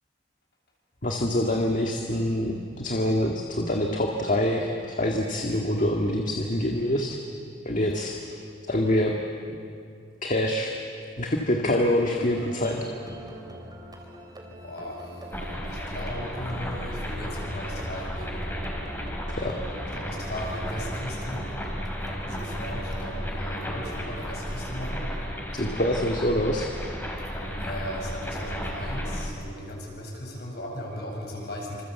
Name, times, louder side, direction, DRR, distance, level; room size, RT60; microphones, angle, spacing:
voice 1, 1.0-7.2 7.7-8.2 8.7-9.1 10.2-10.7 11.2-12.8 19.3-19.5 25.5-26.7, left 1 dB, 45° left, 1 dB, 1.9 m, -25 dB
sound 1, 12.0-23.3, equal, 25° right, 3.5 m, -42 dB
voice 2, 14.6-15.4 15.6-18.4 20.0-21.5 22.2-25.1 27.5-31.8, equal, 65° left, -1 dB, 7.6 m, -36 dB
sound 2, 15.3-29.3, equal, 10° left, 4.1 m, -34 dB
27.0 x 26.5 x 8.2 m, 2.4 s
head